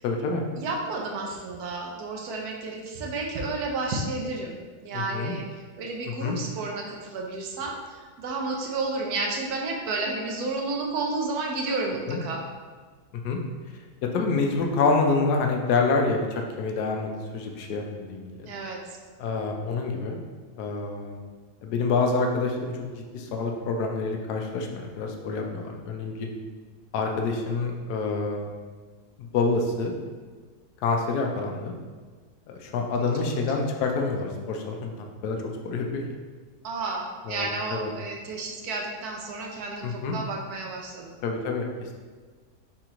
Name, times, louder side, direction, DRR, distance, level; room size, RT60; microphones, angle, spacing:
voice 1, 0.0-0.4 4.9-5.3 6.0-6.4 12.1-12.2 13.2-13.4 14.1-18.5 19.2-20.2 20.6-21.2 21.6-26.3 26.9-28.5 29.2-29.9 30.8-31.7 32.5-35.4 35.6-36.0 37.2-37.9 39.8-40.2 41.2-41.7, left 4 dB, 85° left, 2 dB, 1.2 m, -27 dB
voice 2, 0.6-4.6 4.8-5.4 5.8-12.4 18.4-18.8 36.6-41.1, right 3 dB, 75° right, 0 dB, 1.2 m, -31 dB
4.2 x 3.0 x 3.6 m, 1.4 s
omnidirectional pair, 1.6 m